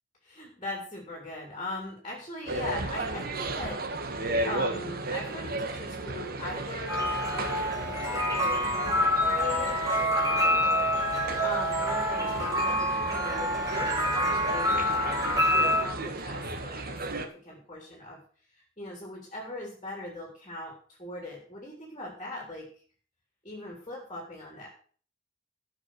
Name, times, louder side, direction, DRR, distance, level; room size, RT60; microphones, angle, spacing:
voice 1, 0.2-10.8 11.4-12.8 13.1-18.2 18.8-22.7 23.4-24.7, left 2 dB, 25° left, 0 dB, 3.4 m, -40 dB
sound 1, 2.5-17.3, right 2 dB, 50° right, 1.5 m, -35 dB
sound 2, 6.9-15.8, equal, 20° right, 3.4 m, -27 dB
14.5 x 5.9 x 6.3 m, 0.43 s
head